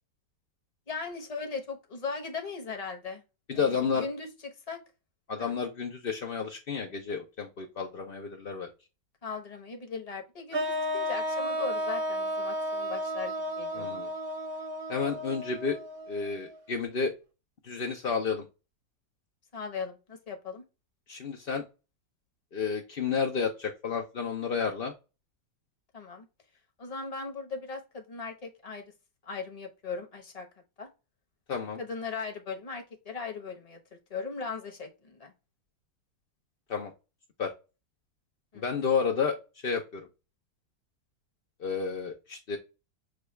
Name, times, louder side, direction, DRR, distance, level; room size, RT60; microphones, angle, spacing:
voice 1, 0.9-3.2 3.5-4.8 5.4-5.5 9.2-14.1 19.5-20.6 25.9-26.3 26.8-28.8 29.2-30.5 30.8-30.9 31.8-33.8 34.1-35.3 38.5-38.6, left 4 dB, 30° left, 3 dB, 0.8 m, -38 dB
voice 2, 3.5-4.1 5.3-8.7 13.7-14.1 14.9-15.8 16.1-17.1 17.6-18.4 21.1-21.6 22.5-24.9 31.5-31.8 36.7-36.9 37.4-37.5 38.5-39.4 39.6-40.0 41.6-42.6, left 5 dB, 65° left, 1 dB, 0.5 m, -31 dB
sound 1, 10.5-16.6, equal, 45° right, 0.7 m, -33 dB
6.3 x 2.3 x 3.1 m, 0.29 s
omnidirectional pair, 1.9 m